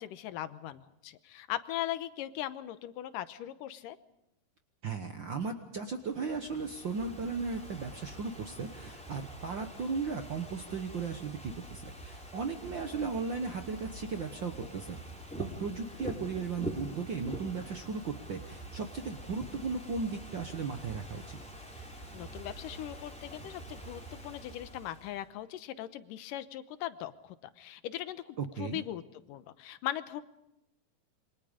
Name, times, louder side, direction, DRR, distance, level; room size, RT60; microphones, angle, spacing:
voice 1, 0.0-4.0 21.8-21.9 22.1-29.0 29.3-30.2, left 13 dB, 80° left, 12 dB, 2.5 m, -39 dB
voice 2, 4.8-15.0 15.4-21.4 28.4-28.8, right 5 dB, 70° right, 6 dB, 1.1 m, -36 dB
Ocean / Fireworks, 5.9-25.2, right 1 dB, ahead, 3.3 m, -45 dB
27.5 x 24.5 x 5.1 m, 0.87 s
omnidirectional pair, 3.9 m